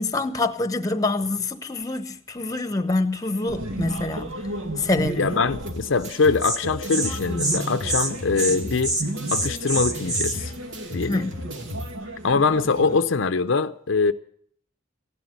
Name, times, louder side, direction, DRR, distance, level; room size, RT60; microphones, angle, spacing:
voice 1, 0.0-4.3 4.8-5.2 11.1-11.3, left 2 dB, 15° left, 1.0 m, -25 dB
sound 1, 3.5-13.0, right 1 dB, 75° right, 2.1 m, -33 dB
voice 2, 5.2-9.0 9.3-10.5 10.9-11.3 12.2-14.1, left 4 dB, 70° left, 0.6 m, -23 dB
sound 2, 5.7-11.9, left 1 dB, 60° right, 2.5 m, -37 dB
Insect, 6.0-6.1 6.4-6.6 6.9-7.1 7.4-7.6 7.9-8.1 8.4-8.6 8.8-10.3, right 2 dB, 20° right, 1.6 m, -25 dB
16.0 x 11.5 x 7.9 m
head